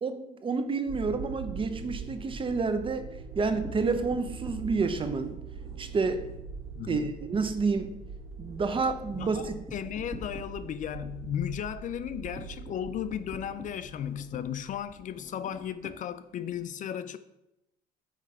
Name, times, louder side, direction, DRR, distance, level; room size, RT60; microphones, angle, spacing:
voice 1, 0.0-3.0 3.4-5.4 5.8-6.3 6.9-7.9 8.4-9.5, right 4 dB, 30° right, 9 dB, 0.7 m, -29 dB
sound 1, 0.9-15.1, right 6 dB, 85° right, 0.7 m, -43 dB
sound 2, 3.3-6.5 6.9-7.1 7.4-7.5 7.8-16.6, left 1 dB, ahead, 2.0 m, -47 dB
voice 2, 6.7-7.2 9.1-17.2, left 9 dB, 50° left, 13 dB, 0.4 m, -35 dB
8.6 x 3.3 x 5.0 m, 0.87 s
cardioid pair, 110°, 17 cm